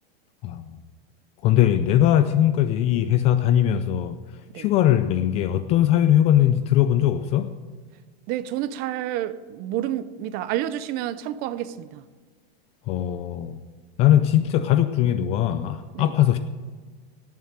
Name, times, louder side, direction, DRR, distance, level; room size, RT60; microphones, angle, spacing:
voice 1, 1.4-4.2 4.6-7.5 12.9-13.6 14.0-16.4, left 11 dB, 20° left, 0.3 m, -20 dB
voice 2, 8.3-12.0 15.9-16.1, right 12 dB, 30° right, 0.6 m, -29 dB
17.5 x 6.9 x 8.9 m
supercardioid pair, 155°, 30 cm